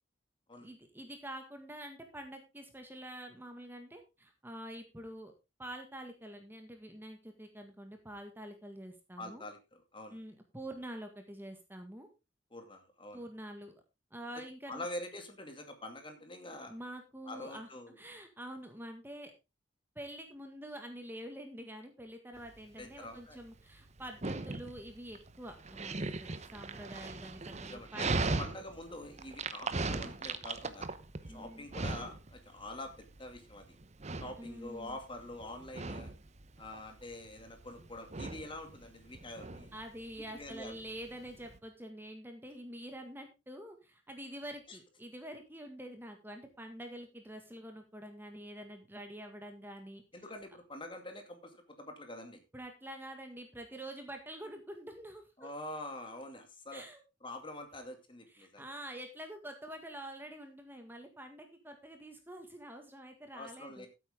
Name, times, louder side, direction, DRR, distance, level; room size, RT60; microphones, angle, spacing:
voice 1, 0.6-5.3 5.6-9.4 10.1-12.1 13.1-13.7 14.1-14.9 16.6-17.7 18.0-19.3 19.9-28.5 31.3-31.6 34.4-35.0 39.7-50.0 52.5-55.5 56.7-57.0 58.3-63.9, right 1 dB, 10° right, 5 dB, 1.8 m, -46 dB
voice 2, 9.2-10.2 12.5-13.2 14.7-16.7 17.2-18.0 22.8-23.4 27.7-30.9 31.3-33.8 34.2-36.1 36.6-39.7 40.3-40.8 44.7-44.8 50.1-52.4 55.4-56.8 57.2-58.6 63.3-63.9, left 1 dB, 25° left, 6 dB, 2.3 m, -45 dB
Dog, 22.4-41.6, right 3 dB, 35° right, 0.9 m, -40 dB
14.5 x 8.5 x 3.6 m, 0.25 s
head